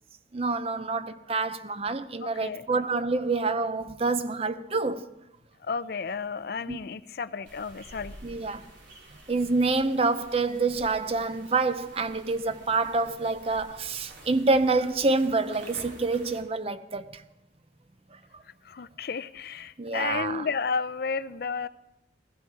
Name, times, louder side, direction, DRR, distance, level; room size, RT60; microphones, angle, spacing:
voice 1, 0.3-5.1 6.7-6.8 8.2-8.7 9.3-17.2 19.8-20.4, right 3 dB, 30° right, 0.6 m, -27 dB
voice 2, 2.2-2.7 5.6-8.2 18.4-21.7, left 5 dB, 55° left, 0.4 m, -32 dB
sound 1, 7.4-16.4, right 1 dB, 75° right, 3.0 m, -50 dB
16.5 x 15.0 x 4.6 m
head